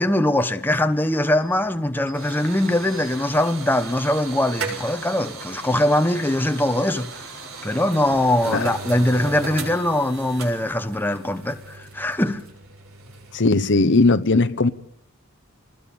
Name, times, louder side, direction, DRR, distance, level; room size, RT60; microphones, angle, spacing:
voice 1, 0.0-7.1 7.6-12.4, left 1 dB, 10° left, 1.0 m, -22 dB
sound 1, 1.4-14.1, right 3 dB, 75° right, 6.8 m, -37 dB
voice 2, 13.3-14.7, left 3 dB, 55° left, 1.1 m, -18 dB
27.5 x 20.5 x 7.1 m
head